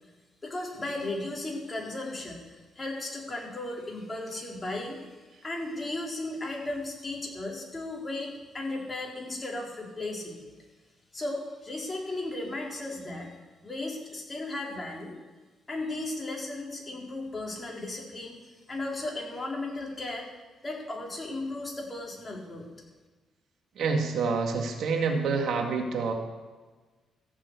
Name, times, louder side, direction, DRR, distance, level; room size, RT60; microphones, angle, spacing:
voice 1, 0.4-5.1 5.4-10.5 11.1-13.3 13.6-15.2 15.7-20.3 20.6-22.7, left 2 dB, 25° left, -1 dB, 4.0 m, -35 dB
voice 2, 23.8-26.1, right 4 dB, 70° right, 3 dB, 2.0 m, -27 dB
14.5 x 7.4 x 8.2 m, 1.3 s
cardioid pair, 90°, 0 cm